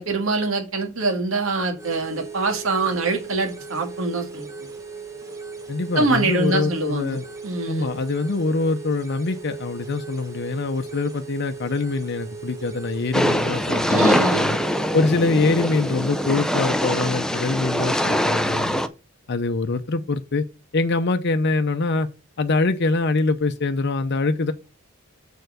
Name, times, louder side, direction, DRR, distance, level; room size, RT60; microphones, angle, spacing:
voice 1, 0.0-4.5 5.9-7.9 13.9-14.5, right 3 dB, 70° right, 2.0 m, -24 dB
sound 1, 1.7-16.7, right 5 dB, 15° right, 1.4 m, -38 dB
voice 2, 5.7-7.2 7.7-14.6 14.9-18.8 19.3-20.4 20.7-22.1 22.4-24.5, left 3 dB, 55° left, 0.7 m, -24 dB
sound 2, 13.1-18.9, equal, 5° left, 0.5 m, -23 dB
6.8 x 4.6 x 6.5 m
head